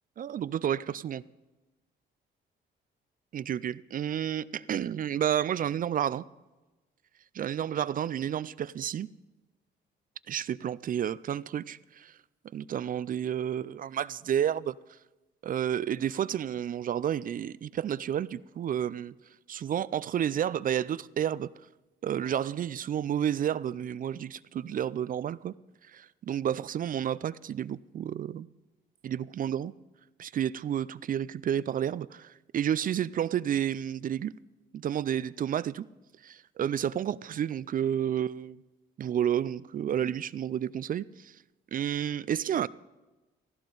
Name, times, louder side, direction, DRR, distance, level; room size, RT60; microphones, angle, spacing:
voice 1, 0.2-1.2 3.3-6.2 7.3-9.1 10.3-12.1 12.5-14.8 15.4-19.1 19.5-21.5 22.0-25.5 25.9-28.5 29.0-29.7 30.2-34.3 34.7-35.9 36.2-38.6 39.0-41.3 41.7-42.7, right 9 dB, 45° right, 0.4 m, -31 dB
16.5 x 14.5 x 4.0 m
cardioid pair, 90°, 20 cm